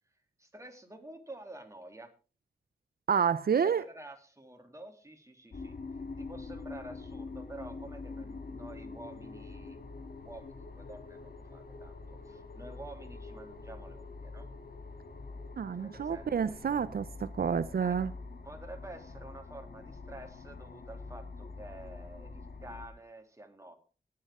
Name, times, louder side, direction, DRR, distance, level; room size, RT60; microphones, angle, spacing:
voice 1, 0.4-2.1 3.6-5.7 6.2-9.8 10.2-14.5 15.7-16.6 17.8-18.0 18.4-23.7, right 2 dB, 20° right, 2.3 m, -49 dB
voice 2, 3.1-3.8 15.6-18.1, right 7 dB, 85° right, 0.5 m, -29 dB
sound 1, 5.5-22.9, left 3 dB, 85° left, 1.5 m, -45 dB
19.5 x 7.7 x 3.6 m
wide cardioid pair, 75°, 16 cm